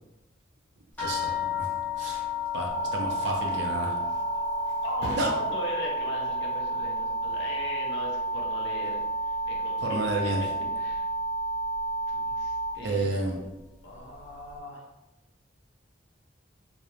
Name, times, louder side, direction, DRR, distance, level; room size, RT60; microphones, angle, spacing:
sound 1, 1.0-9.8 10.1-11.0 11.7-11.8 12.3-12.4, left 10 dB, 10° left, 0.6 m, -36 dB
voice 1, 1.0-1.7 2.0-2.2 2.5-4.0 5.2-5.3 9.8-10.4 12.8-13.4, right 2 dB, 70° right, 1 dB, 0.5 m, -30 dB
sound 2, 2.7-12.7, right 2 dB, 40° right, 0.9 m, -31 dB
Thump thud, 3.6-10.9 11.3-11.7, right 1 dB, 85° right, 1.0 m, -47 dB
voice 2, 4.8-10.3 10.7-11.1 12.1-13.4 13.8-14.9, left 1 dB, 75° left, -1 dB, 0.6 m, -39 dB
2.5 x 2.0 x 3.0 m, 1.0 s
head